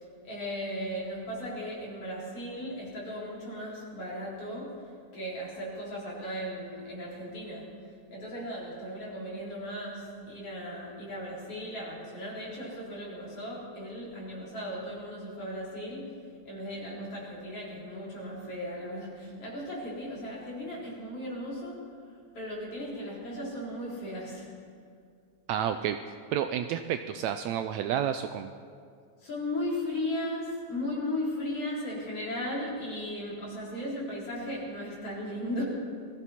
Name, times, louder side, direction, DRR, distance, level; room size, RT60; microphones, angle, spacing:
voice 1, 0.2-4.8 5.1-7.8 8.1-16.1 16.4-21.8 22.3-24.5 29.2-35.6, left 1 dB, 50° left, -6 dB, 4.7 m, -36 dB
voice 2, 25.5-26.0 26.3-28.5, right 9 dB, 80° right, 8 dB, 1.7 m, -30 dB
22.0 x 14.5 x 4.2 m, 2.2 s
omnidirectional pair, 3.5 m